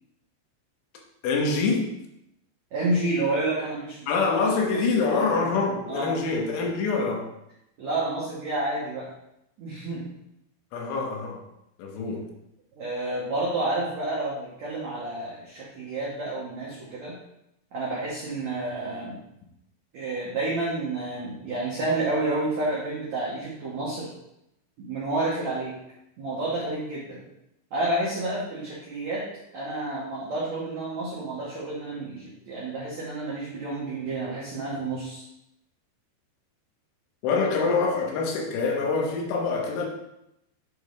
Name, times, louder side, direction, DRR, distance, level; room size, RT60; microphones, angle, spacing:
voice 1, 1.2-1.9 4.1-7.3 10.7-11.4 11.8-12.3 37.2-39.9, left 4 dB, 85° left, 0 dB, 3.6 m, -25 dB
voice 2, 2.7-4.0 4.7-5.4 5.9-6.2 7.8-9.1 9.6-10.1 12.7-17.1 17.7-19.1 19.9-24.1 24.8-25.7 26.2-27.2 27.7-29.2 29.5-35.2, right 2 dB, 80° right, -6 dB, 1.6 m, -30 dB
8.7 x 5.0 x 3.2 m, 0.82 s
omnidirectional pair, 5.3 m